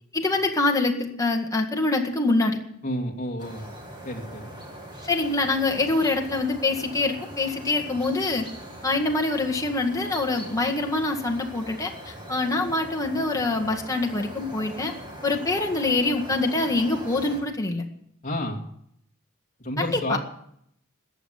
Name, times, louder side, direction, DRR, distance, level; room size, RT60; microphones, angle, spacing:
voice 1, 0.1-2.6 5.0-8.5 8.8-14.9 15.2-17.8 19.8-20.2, left 2 dB, 15° left, 2 dB, 1.8 m, -25 dB
voice 2, 2.8-3.7 4.0-4.6 18.2-18.6 19.6-20.2, left 1 dB, 35° left, 1 dB, 2.3 m, -30 dB
sound 1, 3.4-17.4, right 1 dB, 20° right, 2.4 m, -41 dB
14.5 x 8.3 x 9.7 m, 0.73 s
head